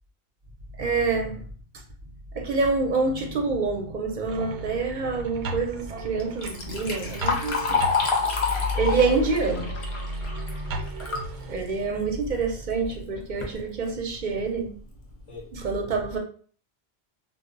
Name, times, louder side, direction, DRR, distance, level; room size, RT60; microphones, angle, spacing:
voice 1, 0.8-1.5 2.3-8.1 8.7-9.7 11.5-14.7 15.5-16.2, right 4 dB, 55° right, 2 dB, 0.6 m, -26 dB
sound 1, 4.3-11.6, equal, 90° right, 0.8 m, -34 dB
Liquid, 6.2-11.3 11.7-11.8 12.7-12.8 13.2-13.5 14.2-14.3 14.8-14.9 15.3-15.5, left 4 dB, 40° left, 0.5 m, -28 dB
2.0 x 2.0 x 3.7 m, 0.43 s
omnidirectional pair, 1.1 m